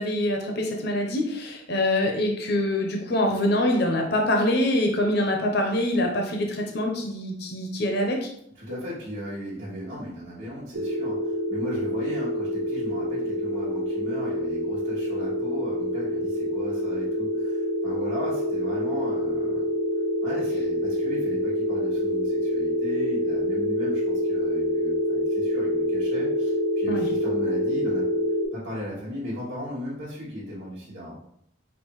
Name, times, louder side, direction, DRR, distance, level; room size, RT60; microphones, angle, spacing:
voice 1, 0.0-8.3 26.9-27.1, left 1 dB, 55° left, 2 dB, 0.6 m, -25 dB
voice 2, 8.5-19.6 20.2-28.0 28.5-31.2, equal, 85° right, -10 dB, 1.4 m, -37 dB
sound 1, 10.7-28.5, equal, 60° right, 0.6 m, -26 dB
5.5 x 2.5 x 3.0 m, 0.72 s
head